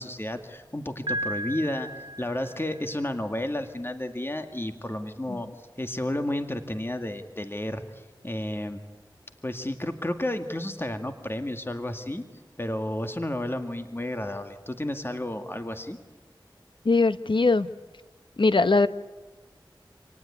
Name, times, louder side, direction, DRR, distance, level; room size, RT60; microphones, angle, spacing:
voice 1, 0.0-1.9 2.2-5.5 5.8-8.8 9.4-12.2 12.6-16.0, left 1 dB, 25° left, 7 dB, 2.0 m, -32 dB
Piano, 1.1-3.0, right 1 dB, 65° right, 1.5 m, -34 dB
voice 2, 16.8-17.7 18.4-18.9, left 3 dB, 70° left, 13 dB, 1.0 m, -21 dB
27.5 x 19.0 x 9.7 m, 1.2 s
wide cardioid pair, 40°, 9 cm